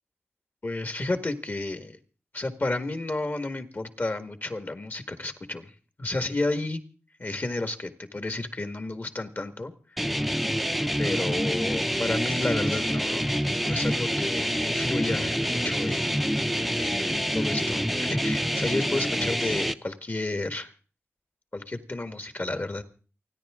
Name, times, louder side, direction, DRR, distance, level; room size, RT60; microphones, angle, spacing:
voice 1, 0.6-2.0 2.3-5.7 6.0-6.8 7.2-10.0 11.0-13.3 13.6-16.1 16.7-20.7 21.5-22.8, left 2 dB, 40° left, 9 dB, 1.7 m, -31 dB
sound 1, 10.0-19.7, equal, ahead, 0.7 m, -27 dB
28.5 x 10.0 x 3.7 m, 0.38 s
cardioid pair, 45°, 5 cm